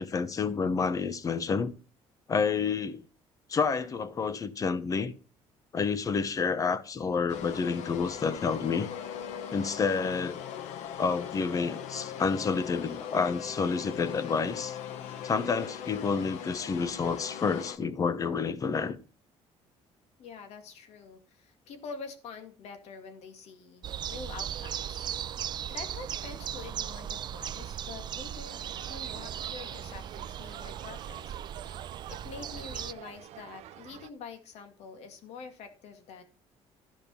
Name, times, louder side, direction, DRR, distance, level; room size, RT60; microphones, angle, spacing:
voice 1, 0.0-1.7 2.3-3.0 3.5-5.1 5.7-8.9 9.5-10.4 11.0-14.8 15.2-19.0, left 5 dB, 30° left, 1.0 m, -29 dB
sound 1, 7.3-17.8, left 8 dB, 90° left, 1.1 m, -40 dB
voice 2, 20.2-25.1 25.7-36.2, left 5 dB, 70° left, 2.2 m, -46 dB
sound 2, 23.8-32.9, right 10 dB, 40° right, 0.4 m, -38 dB
sound 3, 28.4-34.1, right 13 dB, 75° right, 0.8 m, -47 dB
13.5 x 5.3 x 5.5 m
cardioid pair, 140°, 11 cm